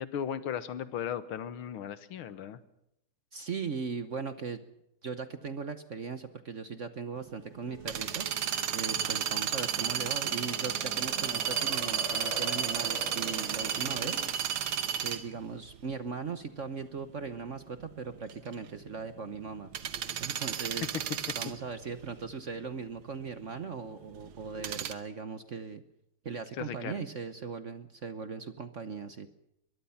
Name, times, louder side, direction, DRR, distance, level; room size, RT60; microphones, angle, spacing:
voice 1, 0.0-2.6 26.6-27.0, left 9 dB, 85° left, 13 dB, 2.0 m, -36 dB
voice 2, 3.3-4.6 5.0-8.3 8.7-14.2 15.0-19.7 20.2-20.9 21.3-25.8 26.2-29.3, right 5 dB, 45° right, 10 dB, 1.1 m, -39 dB
sound 1, 7.1-14.3, left 4 dB, 35° left, 2.3 m, -45 dB
sound 2, 7.2-24.9, right 9 dB, 80° right, 2.0 m, -33 dB
22.5 x 22.0 x 5.7 m, 0.79 s
omnidirectional pair, 2.3 m